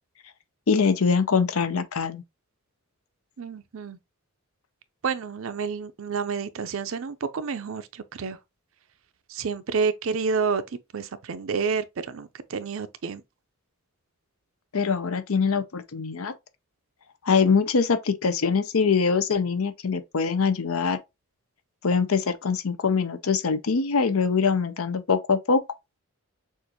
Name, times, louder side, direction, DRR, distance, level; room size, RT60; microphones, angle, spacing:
voice 1, 0.7-2.2 14.7-16.3 17.2-21.0 21.8-25.6, left 5 dB, 75° left, 0.6 m, -23 dB
voice 2, 3.4-4.0 5.0-8.4 9.3-10.6 10.9-13.2, right 5 dB, 65° right, 0.5 m, -29 dB
6.5 x 2.5 x 2.8 m
head